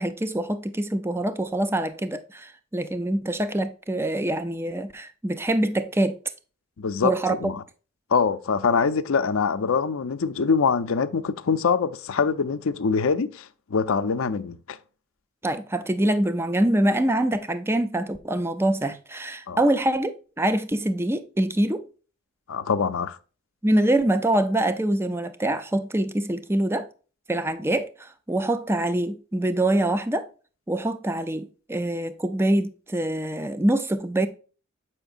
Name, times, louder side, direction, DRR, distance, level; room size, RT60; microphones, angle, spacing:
voice 1, 0.0-6.2 7.0-7.5 15.4-21.9 23.6-26.9 27.3-30.3 30.7-34.3, right 1 dB, 10° right, 0.5 m, -25 dB
voice 2, 6.8-7.6 8.1-14.8 19.5-19.6 22.5-23.2, left 5 dB, 80° left, 0.5 m, -24 dB
7.9 x 5.7 x 2.5 m
head